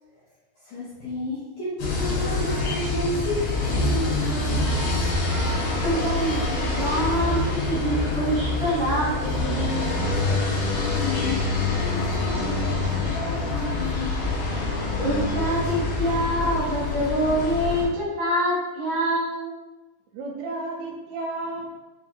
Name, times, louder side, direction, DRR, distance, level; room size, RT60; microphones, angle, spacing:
voice 1, 0.7-5.0 10.6-14.2, left 2 dB, 90° left, -8 dB, 1.8 m, -32 dB
sound 1, 1.8-17.8, left 2 dB, 70° left, 2.1 m, -26 dB
voice 2, 5.8-9.9 15.0-19.6, equal, 65° right, -7 dB, 2.3 m, -25 dB
voice 3, 20.1-21.7, right 2 dB, 80° right, -2 dB, 2.5 m, -32 dB
5.9 x 2.7 x 2.5 m, 1.1 s
omnidirectional pair, 4.6 m